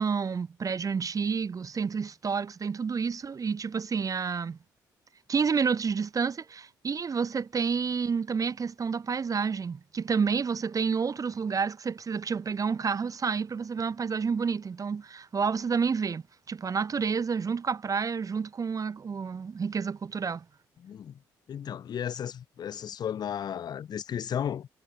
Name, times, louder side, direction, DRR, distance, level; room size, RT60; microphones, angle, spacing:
voice 1, 0.0-4.6 5.3-20.4, right 5 dB, 35° right, 0.9 m, -29 dB
voice 2, 20.8-21.2 21.5-24.7, left 9 dB, 45° left, 0.5 m, -34 dB
hypercardioid pair, 50°, 10 cm